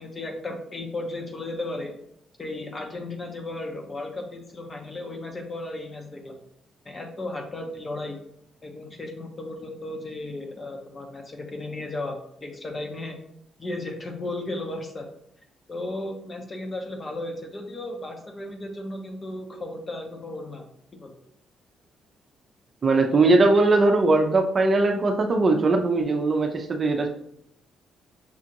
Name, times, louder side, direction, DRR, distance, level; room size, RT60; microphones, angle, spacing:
voice 1, 0.0-1.9 2.4-6.4 6.8-8.2 8.6-13.1 13.6-15.1 15.7-20.6 20.9-21.1, left 2 dB, 30° left, 3 dB, 0.9 m, -35 dB
voice 2, 22.8-27.1, right 2 dB, 40° right, 3 dB, 0.6 m, -20 dB
6.1 x 2.4 x 2.9 m, 0.71 s
cardioid pair, 90°, 0 cm